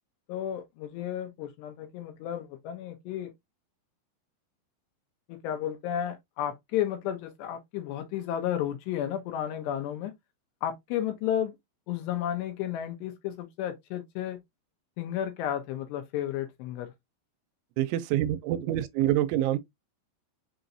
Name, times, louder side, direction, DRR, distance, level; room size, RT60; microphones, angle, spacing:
voice 1, 0.3-3.3 5.3-10.1 10.6-11.6 11.9-14.4 15.0-16.9, left 10 dB, 75° left, 2.7 m, -32 dB
voice 2, 17.8-19.6, right 13 dB, 85° right, 3.0 m, -26 dB
6.8 x 3.0 x 2.6 m
omnidirectional pair, 5.3 m